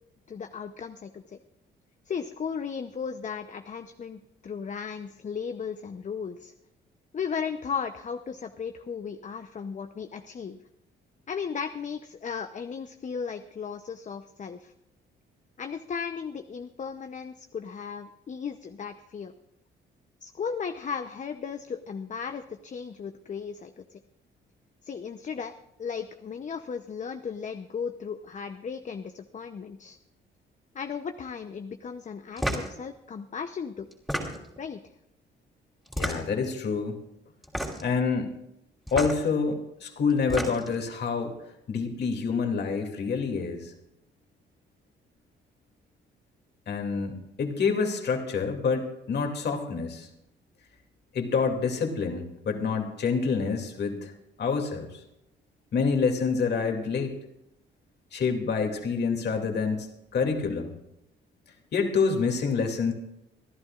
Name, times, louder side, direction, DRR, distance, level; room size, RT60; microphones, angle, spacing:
voice 1, 0.3-1.4 2.1-6.5 7.1-10.6 11.3-14.7 15.6-19.3 20.2-24.0 24.8-25.5 25.8-30.0 30.7-33.9 34.6-34.8, left 6 dB, 40° left, 7 dB, 0.7 m, -36 dB
sound 1, 32.4-32.7 33.9-34.6 35.9-36.5 37.4-37.9 38.9-39.2 40.1-40.8, equal, ahead, 3.0 m, -31 dB
voice 2, 36.0-37.0 37.8-38.3 38.9-41.3 41.7-43.7 46.7-50.1 51.1-54.1 54.4-54.9 55.7-57.1 58.1-59.9 60.1-60.7 61.7-62.9, left 5 dB, 60° left, 3 dB, 2.6 m, -27 dB
27.0 x 11.5 x 2.5 m, 0.85 s
cardioid pair, 90°, 20 cm